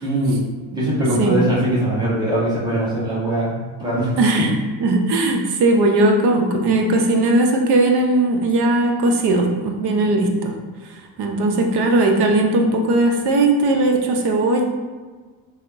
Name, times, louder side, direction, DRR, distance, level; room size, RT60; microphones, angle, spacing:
voice 1, 0.0-0.4 0.7-4.5, right 1 dB, 10° right, -8 dB, 1.3 m, -21 dB
voice 2, 4.2-4.5 4.8-10.5 11.2-14.6, right 2 dB, 55° right, 2 dB, 0.7 m, -18 dB
3.5 x 2.1 x 3.5 m, 1.4 s
supercardioid pair, 75°, 48 cm